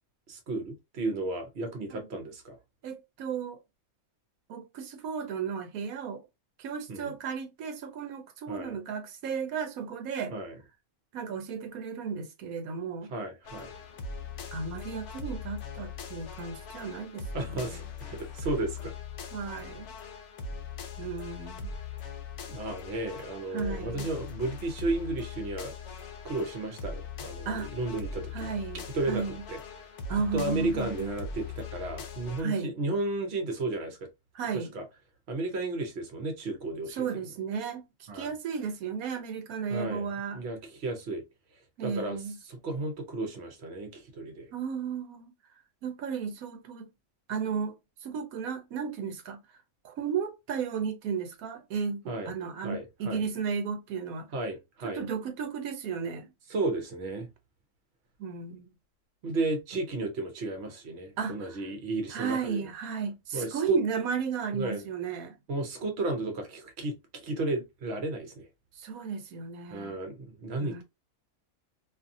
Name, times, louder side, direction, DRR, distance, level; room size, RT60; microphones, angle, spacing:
voice 1, 0.3-2.6 6.9-7.2 8.5-8.7 10.3-10.6 13.1-13.7 17.3-17.8 18.1-18.9 22.5-28.5 28.9-29.6 30.3-34.1 34.5-34.8 35.3-37.3 38.1-38.3 39.7-40.1 40.3-41.2 41.8-42.2 42.5-44.5 52.1-52.3 52.6-53.2 54.3-55.0 56.5-57.3 59.2-62.7 63.3-63.8 64.5-64.8 65.5-68.5 69.7-70.8, right 2 dB, 55° right, 0.9 m, -33 dB
voice 2, 2.8-3.6 4.5-6.3 6.6-10.3 11.1-13.1 14.5-17.8 19.3-19.9 21.0-21.7 23.5-24.1 27.5-27.7 28.3-29.4 30.1-31.1 32.4-32.7 34.3-34.7 36.9-40.4 41.8-42.4 44.5-45.3 45.8-46.9 47.3-47.7 48.0-49.4 49.8-54.3 54.8-56.3 58.2-58.7 61.2-61.7 62.1-65.3 68.8-70.0 70.6-70.8, right 6 dB, 85° right, 1.1 m, -34 dB
sound 1, 13.4-32.4, left 5 dB, 65° left, 0.8 m, -41 dB
2.7 x 2.5 x 2.6 m
omnidirectional pair, 1.5 m